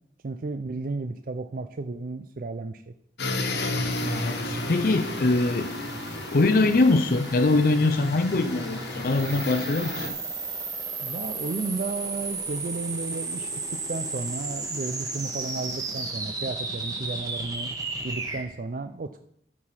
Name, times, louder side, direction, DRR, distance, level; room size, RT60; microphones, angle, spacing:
voice 1, 0.2-2.8 11.0-17.7 18.0-19.2, right 3 dB, 50° right, 8 dB, 0.4 m, -33 dB
sound 1, 3.2-10.1, left 2 dB, 75° left, 1.4 m, -32 dB
sound 2, 3.9-18.4, right 3 dB, 20° right, 1.4 m, -35 dB
voice 2, 4.0-5.7 6.3-10.1, left 2 dB, 55° left, 8 dB, 0.5 m, -23 dB
12.0 x 4.8 x 5.7 m, 0.73 s
head